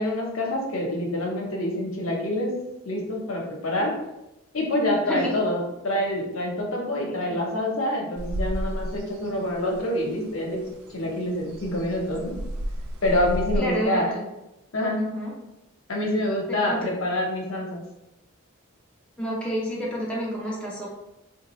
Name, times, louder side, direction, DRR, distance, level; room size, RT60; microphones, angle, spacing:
voice 1, 0.0-2.5 2.8-3.9 4.5-10.7 10.9-12.4 13.0-14.1 14.7-15.0 15.9-17.8, left 1 dB, 65° left, -1 dB, 0.8 m, -26 dB
voice 2, 5.0-5.4 7.3-7.4 13.6-14.2 15.0-15.3 16.5-16.8 19.2-20.9, equal, 5° left, -5 dB, 0.5 m, -29 dB
sound 1, 8.2-13.6, equal, 90° right, 0.4 m, -33 dB
3.6 x 2.4 x 3.0 m, 0.93 s
head